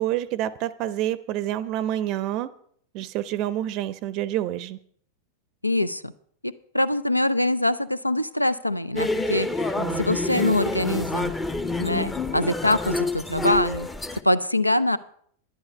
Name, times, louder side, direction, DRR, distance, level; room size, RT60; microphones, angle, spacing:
voice 1, 0.0-2.5 2.9-4.8 9.8-10.1, right 12 dB, 40° right, 0.5 m, -28 dB
voice 2, 5.6-6.1 6.4-9.5 10.0-11.3 11.8-13.9 14.2-15.0, left 1 dB, 85° left, 0.5 m, -24 dB
sound 1, 9.0-14.2, left 2 dB, 10° left, 0.7 m, -27 dB
11.0 x 10.5 x 5.3 m
figure-of-eight pair, 90°, 0 cm